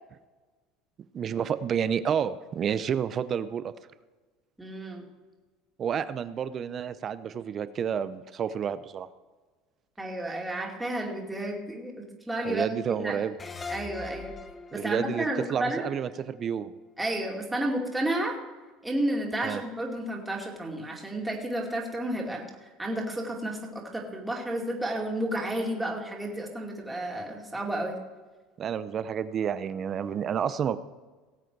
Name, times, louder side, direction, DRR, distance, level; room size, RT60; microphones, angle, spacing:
voice 1, 1.1-3.7 5.8-9.1 12.4-13.3 14.7-16.7 19.4-19.6 28.6-30.8, right 8 dB, 35° right, 14 dB, 0.7 m, -30 dB
voice 2, 4.6-5.1 10.0-13.2 13.7-14.3 14.7-15.9 17.0-18.4 18.8-28.0, right 1 dB, 5° right, -1 dB, 2.4 m, -32 dB
sound 1, 13.4-16.7, left 4 dB, 20° left, 0.9 m, -42 dB
18.5 x 7.8 x 4.7 m, 1.3 s
supercardioid pair, 125°, 0 cm